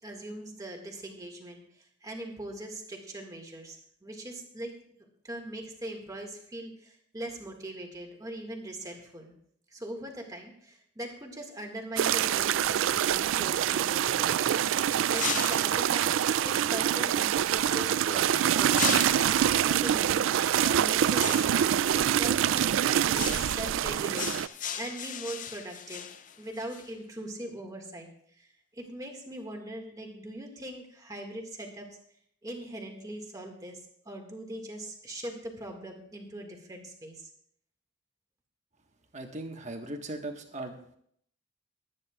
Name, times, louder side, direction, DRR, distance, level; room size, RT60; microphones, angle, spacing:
voice 1, 0.0-4.7 5.0-9.3 9.7-16.1 16.4-20.3 20.6-21.7 21.9-26.0 26.4-28.1 28.4-28.5 28.7-31.9 32.4-33.8 34.1-37.3, right 1 dB, 20° right, 2 dB, 1.9 m, -41 dB
sound 1, 12.0-24.5, right 10 dB, 75° right, 0.3 m, -25 dB
sound 2, 15.1-15.8 18.7-19.5 21.2-21.7 23.1-23.7 24.1-26.9, left 9 dB, 40° left, 0.4 m, -36 dB
voice 2, 39.1-40.7, right 2 dB, 35° right, 3 dB, 1.4 m, -38 dB
22.0 x 9.6 x 2.4 m, 0.66 s
head